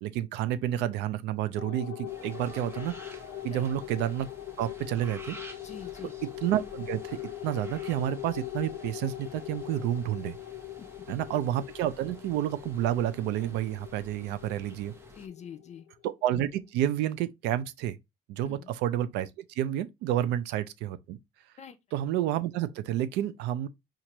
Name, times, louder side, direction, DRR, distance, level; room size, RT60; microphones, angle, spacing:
voice 1, 0.0-2.9 3.4-4.3 4.6-5.4 6.4-7.2 7.4-10.4 11.1-14.9 16.0-18.0 18.3-21.2 21.9-23.7, right 12 dB, 90° right, 0.5 m, -30 dB
sound 1, 1.6-16.3, left 14 dB, 90° left, 0.5 m, -42 dB
sound 2, 2.1-15.3, right 1 dB, 15° right, 0.8 m, -51 dB
voice 2, 5.6-6.1 10.8-10.9 15.1-15.9 18.4-18.7 20.2-20.3 21.6-21.8, left 7 dB, 40° left, 0.5 m, -45 dB
4.4 x 2.5 x 2.9 m
cardioid pair, 110°, 17 cm